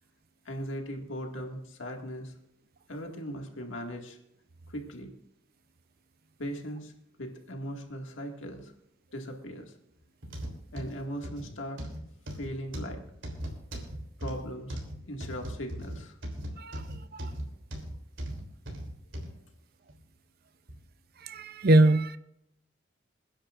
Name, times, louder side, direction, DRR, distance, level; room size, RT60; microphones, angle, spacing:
voice 1, 0.5-2.3 2.9-4.2 4.7-5.1 6.4-6.9 7.2-8.7 9.1-9.7 10.7-11.8 12.4-13.0 14.2-16.2, equal, 75° left, 2 dB, 2.0 m, -38 dB
sound 1, 10.2-19.3 19.9-20.0 20.7-20.8, equal, 65° right, 3.3 m, -38 dB
voice 2, 21.2-22.2, right 2 dB, 50° right, 13 dB, 0.6 m, -22 dB
28.0 x 10.0 x 2.5 m, 0.76 s
head